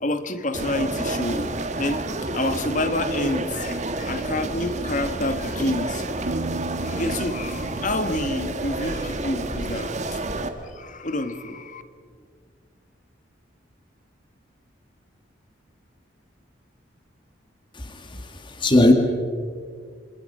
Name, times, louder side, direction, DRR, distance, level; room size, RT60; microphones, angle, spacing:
voice 1, 0.0-2.0 2.3-6.0 6.8-10.2 10.7-11.8, left 1 dB, 40° left, 10 dB, 1.4 m, -28 dB
sound 1, 0.5-10.5, right 2 dB, 35° right, 1.6 m, -29 dB
Piano, 6.3-10.0, right 2 dB, 60° right, 1.6 m, -37 dB
voice 2, 17.7-18.9, left 1 dB, 25° left, 5 dB, 1.9 m, -19 dB
27.5 x 27.0 x 5.5 m, 2.1 s
head